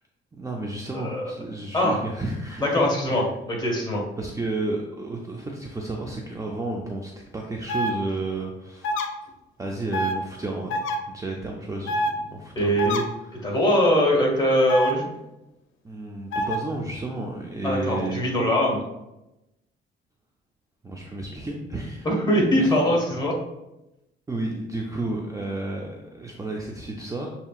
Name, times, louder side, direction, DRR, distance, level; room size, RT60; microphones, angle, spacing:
voice 1, 0.4-3.3 4.2-8.9 9.6-10.8 11.1-13.6 15.8-18.2 20.8-22.1 22.6-22.9 24.3-27.3, right 2 dB, 15° right, 0 dB, 0.5 m, -32 dB
voice 2, 2.6-4.0 12.5-13.0 13.4-15.1 17.6-18.8 22.0-23.3, equal, 20° left, -2 dB, 1.6 m, -22 dB
sound 1, 7.7-7.9 8.8-9.1 9.9-10.1 10.7-11.0 11.9-12.1 12.8-13.0 14.7-14.9 16.3-16.6, left 1 dB, 80° left, 0.5 m, -25 dB
6.7 x 2.8 x 2.4 m, 0.92 s
cardioid pair, 90°, 20 cm